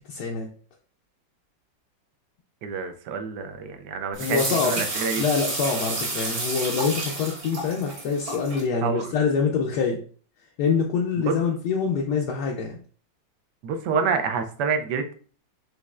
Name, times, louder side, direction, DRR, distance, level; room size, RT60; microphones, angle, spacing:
voice 1, 0.1-0.5 4.2-4.8 5.1-10.0 10.6-12.8, left 5 dB, 70° left, 0 dB, 1.1 m, -25 dB
voice 2, 2.6-5.2 8.8-9.1 11.2-11.3 13.6-15.1, right 5 dB, 75° right, 6 dB, 1.1 m, -27 dB
sound 1, 4.1-8.6, right 2 dB, 55° right, 1.7 m, -30 dB
5.2 x 3.2 x 2.4 m, 0.42 s
omnidirectional pair, 2.0 m